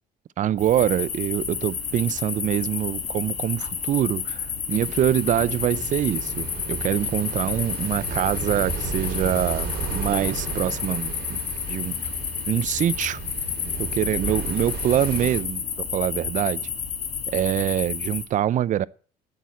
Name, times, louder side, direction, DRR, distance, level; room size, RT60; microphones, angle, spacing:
voice 1, 0.4-11.4 11.7-12.0 12.5-13.2 13.8-16.6 17.3-18.9, right 11 dB, 50° right, 0.5 m, -25 dB
sound 1, 0.6-18.2, left 7 dB, 45° left, 2.0 m, -30 dB
sound 2, 4.7-15.4, right 5 dB, 70° right, 4.1 m, -34 dB
8.6 x 7.8 x 8.3 m
cardioid pair, 110°, 17 cm